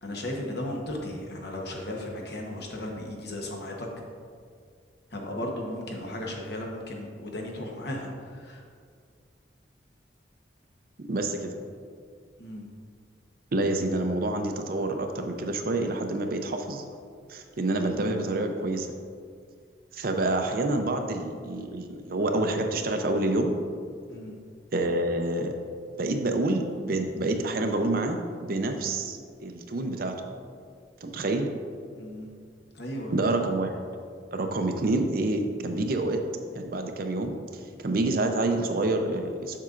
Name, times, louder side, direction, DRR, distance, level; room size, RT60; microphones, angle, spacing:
voice 1, 0.0-3.9 5.1-8.6 12.4-12.7 24.1-24.4 31.9-32.3 32.7-33.4, left 1 dB, 60° left, 0 dB, 1.0 m, -35 dB
voice 2, 11.1-11.5 13.5-16.8 17.3-18.9 19.9-23.5 24.7-25.5 26.0-30.2 31.0-31.5 33.1-33.7 34.3-36.2 36.5-37.4 37.8-39.6, right 2 dB, 55° right, 5 dB, 0.6 m, -27 dB
7.4 x 6.7 x 2.5 m, 2.1 s
head